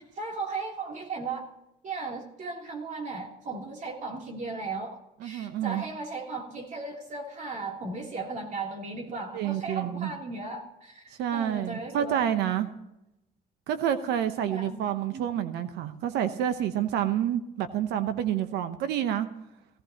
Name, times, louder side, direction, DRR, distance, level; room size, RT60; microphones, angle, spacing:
voice 1, 0.2-1.4 1.8-12.4 14.5-14.8 15.1-15.2, right 3 dB, 45° right, 0 dB, 3.3 m, -36 dB
voice 2, 5.2-5.8 9.3-10.1 11.2-12.7 13.7-19.3, right 10 dB, 85° right, 10 dB, 1.0 m, -28 dB
17.0 x 14.5 x 3.0 m, 0.88 s
cardioid pair, 110°, 17 cm